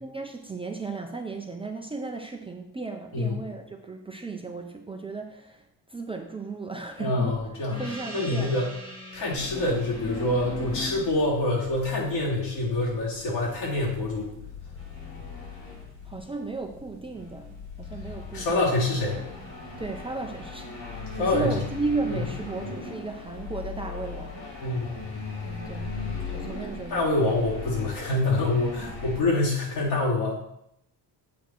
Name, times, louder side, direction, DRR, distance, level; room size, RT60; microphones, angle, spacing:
voice 1, 0.0-5.6 5.9-7.4 7.8-8.6 16.1-18.6 19.8-24.7 25.4-27.2, right 3 dB, 15° right, 3 dB, 0.4 m, -35 dB
voice 2, 7.0-7.8 8.1-8.7 9.1-14.3 18.3-19.2 21.1-21.5 22.1-22.2 24.6-25.0 26.9-30.4, left 2 dB, 80° left, -5 dB, 3.4 m, -26 dB
Gong, 7.7-12.7, equal, 10° left, 1.6 m, -44 dB
sound 1, 9.3-29.2, left 4 dB, 60° left, 2.4 m, -38 dB
8.1 x 4.8 x 4.5 m, 0.79 s
cardioid pair, 165°, 41 cm